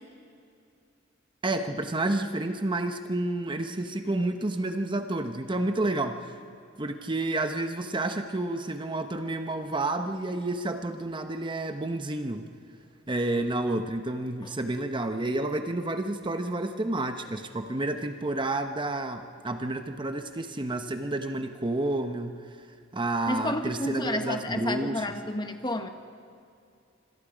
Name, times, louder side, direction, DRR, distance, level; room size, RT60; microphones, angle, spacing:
voice 1, 1.4-6.4 6.8-12.5 13.1-22.7 22.9-25.0, right 2 dB, 25° right, 7 dB, 0.9 m, -30 dB
voice 2, 23.3-25.9, left 1 dB, 20° left, 6 dB, 1.3 m, -31 dB
26.5 x 25.5 x 5.1 m, 2.5 s
head